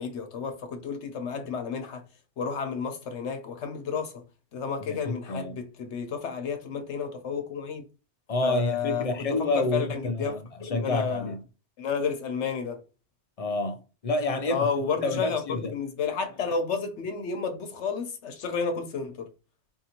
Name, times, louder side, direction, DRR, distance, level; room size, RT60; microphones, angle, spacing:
voice 1, 0.0-2.0 2.4-4.2 4.5-7.8 8.4-10.4 10.7-11.3 11.8-12.8 14.5-19.3, left 5 dB, 75° left, 1.1 m, -31 dB
voice 2, 4.8-5.6 8.3-11.4 13.4-14.7 15.0-15.7, left 2 dB, 45° left, 0.5 m, -29 dB
4.4 x 2.7 x 2.9 m
omnidirectional pair, 1.2 m